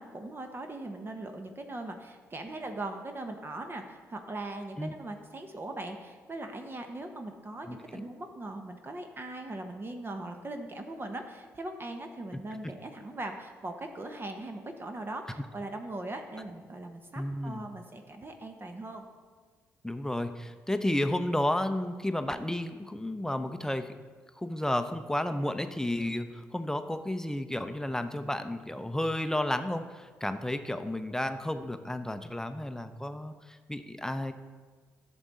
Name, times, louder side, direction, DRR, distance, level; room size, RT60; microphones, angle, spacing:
voice 1, 0.0-19.0 26.0-26.1, right 2 dB, 30° right, 5 dB, 1.0 m, -40 dB
voice 2, 7.7-8.0 17.2-17.7 19.8-23.9 24.4-34.3, left 1 dB, 10° left, 9 dB, 0.6 m, -32 dB
11.0 x 6.3 x 4.1 m, 1.5 s
hypercardioid pair, 45°, 7 cm